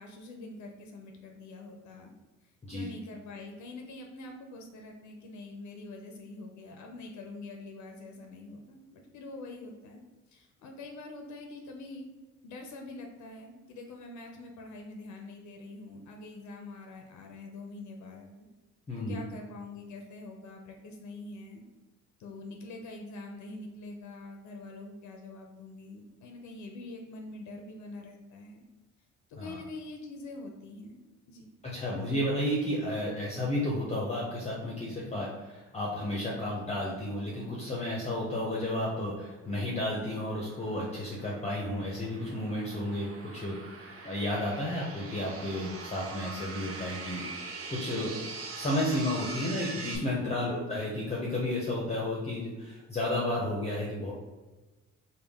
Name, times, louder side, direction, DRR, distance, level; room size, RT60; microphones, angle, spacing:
voice 1, 0.0-2.1 2.4-10.0 10.3-12.1 12.4-18.4 19.1-21.6 22.2-28.7 29.3-31.0 31.3-31.5 50.4-50.8, left 2 dB, 70° left, 3 dB, 0.6 m, -45 dB
voice 2, 18.9-19.2 29.4-29.6 31.6-43.6 44.0-47.2 47.7-48.2 48.5-54.1, left 1 dB, 20° left, -4 dB, 0.7 m, -32 dB
sound 1, 39.3-50.0, right 3 dB, 50° right, 0.8 m, -43 dB
3.6 x 2.2 x 3.5 m, 1.2 s
cardioid pair, 90°, 30 cm